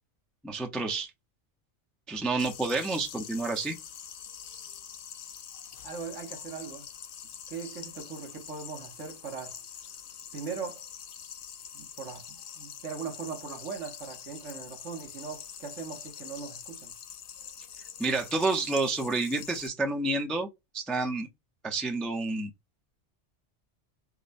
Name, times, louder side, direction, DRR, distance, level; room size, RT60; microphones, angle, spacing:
voice 1, 0.4-1.1 2.1-3.8 18.0-20.5 20.7-21.3 21.6-22.5, right 3 dB, ahead, 0.4 m, -29 dB
sound 1, 2.4-19.7, left 8 dB, 60° left, 0.6 m, -45 dB
voice 2, 5.8-6.9 7.5-9.6 10.3-10.9 11.7-16.9, right 5 dB, 75° right, 1.3 m, -40 dB
5.2 x 2.1 x 2.5 m
omnidirectional pair, 1.2 m